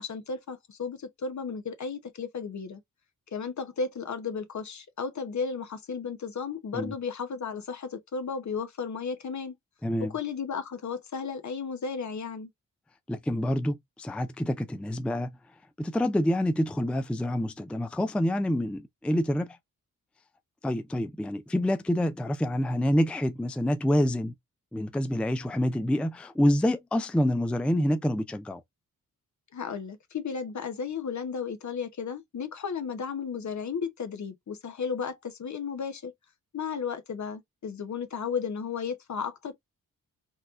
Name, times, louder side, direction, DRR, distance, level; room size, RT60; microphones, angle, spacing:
voice 1, 0.0-2.8 3.3-9.6 10.0-12.5 29.5-36.1 36.5-39.5, left 5 dB, 55° left, 0.9 m, -34 dB
voice 2, 9.8-10.1 13.1-15.3 15.8-19.6 20.6-24.3 24.7-28.6, left 1 dB, 5° left, 0.4 m, -27 dB
4.1 x 2.3 x 2.4 m
cardioid pair, 50°, 35 cm